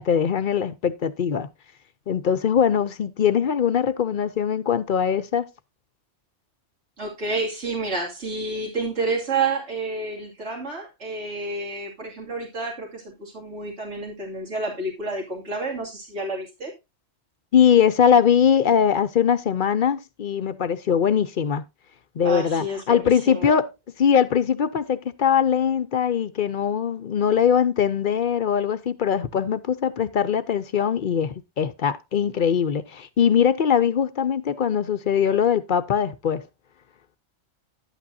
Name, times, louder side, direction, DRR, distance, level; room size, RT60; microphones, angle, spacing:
voice 1, 0.0-1.5 2.1-5.5 17.5-21.6 22.2-23.7 24.0-36.4, left 8 dB, 55° left, 0.7 m, -21 dB
voice 2, 7.0-16.7 22.2-23.6, right 3 dB, 80° right, 2.9 m, -29 dB
11.0 x 8.7 x 2.7 m
omnidirectional pair, 1.2 m